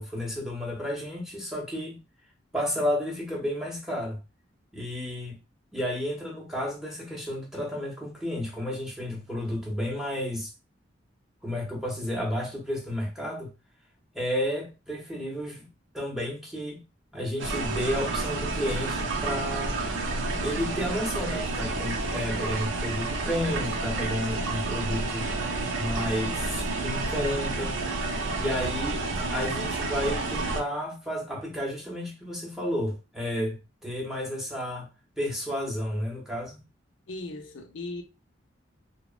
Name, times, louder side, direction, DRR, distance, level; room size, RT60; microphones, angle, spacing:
voice 1, 0.0-2.0 2.5-4.2 4.7-5.4 5.7-10.5 11.4-13.5 14.1-15.7 15.9-16.8 17.1-19.8 20.4-25.3 25.8-27.8 28.4-29.0 29.3-34.9 35.2-36.6, equal, ahead, 0.6 m, -32 dB
sound 1, 17.4-30.6, right 3 dB, 80° right, 0.4 m, -30 dB
voice 2, 37.1-38.0, left 2 dB, 90° left, 0.5 m, -37 dB
2.7 x 2.0 x 2.3 m
head